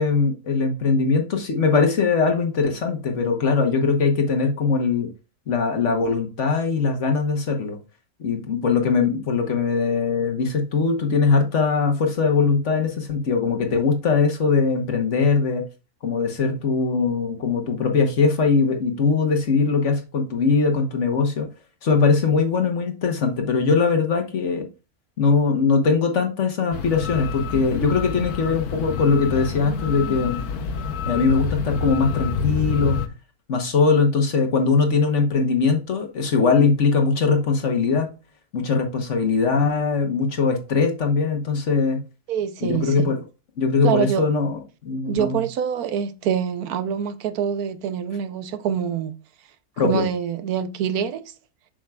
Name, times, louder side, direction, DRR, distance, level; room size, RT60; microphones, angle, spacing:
voice 1, 0.0-5.1 5.5-7.8 8.2-15.6 16.0-21.5 21.8-24.7 25.2-30.4 31.1-33.0 33.5-38.1 38.5-42.0 42.6-43.2 43.6-44.6 44.8-45.4 49.8-50.0, left 4 dB, 55° left, 1.4 m, -21 dB
sound 1, 26.7-33.1, left 6 dB, 80° left, 1.3 m, -28 dB
voice 2, 42.3-43.1 43.8-44.2 45.1-49.2 49.8-51.3, right 8 dB, 80° right, 1.2 m, -25 dB
7.4 x 6.2 x 2.3 m
omnidirectional pair, 1.6 m